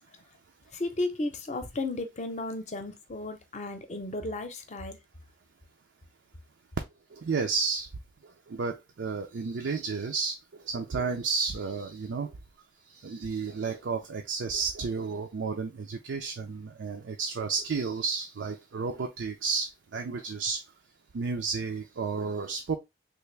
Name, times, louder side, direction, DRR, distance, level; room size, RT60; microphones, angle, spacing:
voice 1, 0.7-5.0, left 2 dB, 40° left, 0.6 m, -34 dB
voice 2, 7.1-7.9 8.5-12.3 12.9-20.6 21.1-22.8, right 4 dB, 90° right, 0.5 m, -32 dB
3.4 x 2.5 x 3.2 m
head